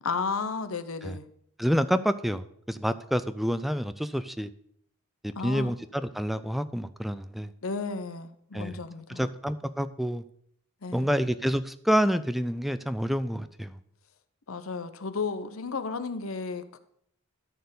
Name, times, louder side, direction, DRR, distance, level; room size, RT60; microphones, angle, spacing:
voice 1, 0.0-1.3 5.4-5.7 7.6-9.3 10.8-11.1 14.5-16.8, left 4 dB, 90° left, 11 dB, 0.9 m, -33 dB
voice 2, 1.6-4.5 5.4-7.5 8.5-8.8 9.1-10.2 10.9-13.8, equal, ahead, 12 dB, 0.4 m, -28 dB
13.0 x 4.5 x 6.8 m, 0.68 s
head